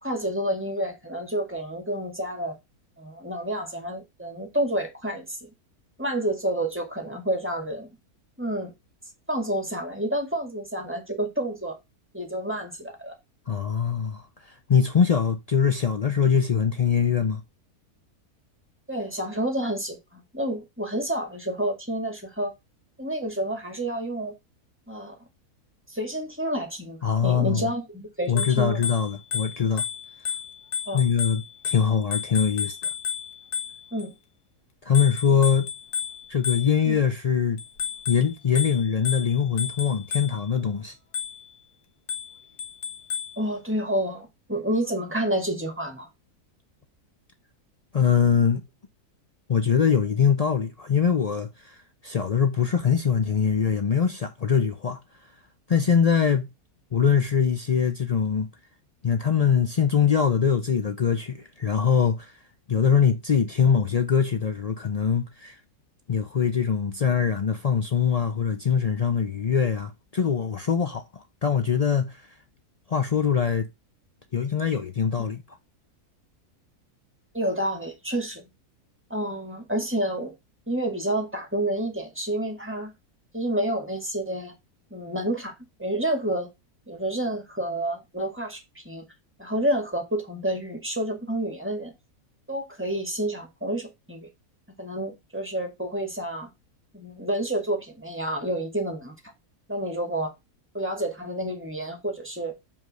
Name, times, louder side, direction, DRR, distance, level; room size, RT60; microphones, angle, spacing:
voice 1, 0.0-2.6 3.0-5.5 6.0-7.9 8.4-8.7 9.3-11.8 12.1-13.2 18.9-22.5 23.0-24.3 24.9-25.2 25.9-28.8 30.9-31.0 33.9-34.1 36.9-37.0 43.4-46.1 77.3-78.4 79.1-80.3 80.7-82.9 83.3-84.5 84.9-85.5 85.8-86.5 86.9-89.0 89.4-91.9 92.5-94.3 94.8-96.5 96.9-99.1 99.7-100.3 100.7-102.6, right 1 dB, 10° right, 2.0 m, -29 dB
voice 2, 13.5-17.4 27.0-27.7 28.3-29.8 30.9-32.9 34.8-35.7 36.3-37.6 38.1-40.9 47.9-48.6 49.5-51.8 52.0-55.0 55.7-56.5 56.9-58.5 59.0-62.3 62.7-65.6 66.1-72.2 72.9-73.7 74.3-75.4, left 7 dB, 50° left, 0.4 m, -23 dB
Bicycle bell, 28.2-34.1 34.9-37.0 37.6-40.6 41.1-41.6 42.1-43.4, left 8 dB, 80° left, 1.7 m, -33 dB
5.4 x 5.3 x 6.2 m
omnidirectional pair, 1.7 m